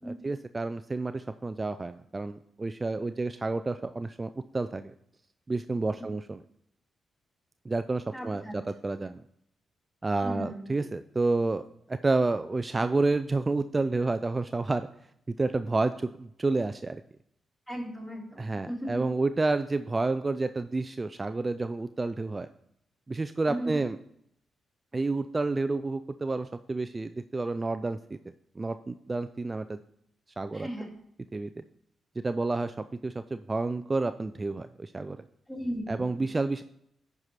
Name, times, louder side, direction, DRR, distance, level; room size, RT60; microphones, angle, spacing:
voice 1, 0.0-4.9 5.5-6.4 7.7-9.2 10.0-14.9 15.4-17.0 18.4-22.5 23.1-24.0 24.9-28.0 28.6-29.8 30.4-30.7 31.3-31.5 32.2-35.2 35.9-36.6, right 3 dB, 30° right, 10 dB, 0.4 m, -30 dB
voice 2, 8.1-8.6 10.2-10.6 17.7-18.9 23.5-23.8 30.5-30.9 35.5-36.3, equal, 15° left, -3 dB, 3.3 m, -36 dB
10.5 x 4.7 x 4.2 m, 0.73 s
hypercardioid pair, 40°, 0 cm